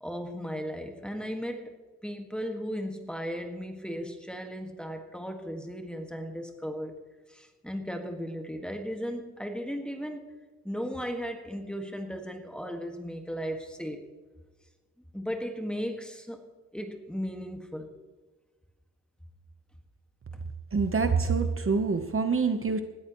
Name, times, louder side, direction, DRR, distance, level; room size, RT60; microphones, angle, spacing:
voice 1, 0.0-1.7 2.0-6.9 7.3-10.3 10.6-14.0 15.1-16.4 16.7-17.9 20.3-20.4, equal, 5° left, 4 dB, 1.7 m, -36 dB
voice 2, 20.7-22.8, right 4 dB, 45° right, 7 dB, 1.0 m, -26 dB
19.5 x 13.5 x 3.1 m, 1.3 s
wide cardioid pair, 140°, 29 cm